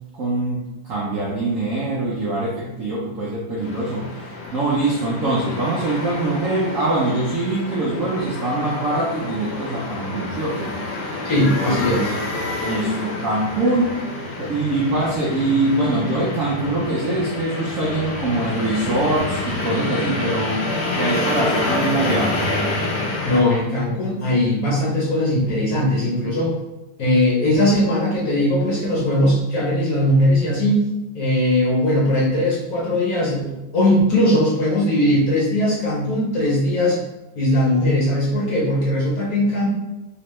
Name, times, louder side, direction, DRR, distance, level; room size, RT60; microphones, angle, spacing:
voice 1, 0.1-4.1 4.5-10.7 11.6-12.0 12.6-14.0 14.4-20.6 20.9-22.4, right 2 dB, 65° right, -5 dB, 0.8 m, -23 dB
sound 1, 3.6-23.4, left 2 dB, 90° left, 1.7 m, -28 dB
voice 2, 11.2-12.1 23.2-26.6 27.0-30.8 31.1-37.0 37.4-39.7, left 1 dB, 55° left, -5 dB, 1.1 m, -19 dB
3.9 x 3.2 x 3.1 m, 1.0 s
omnidirectional pair, 2.2 m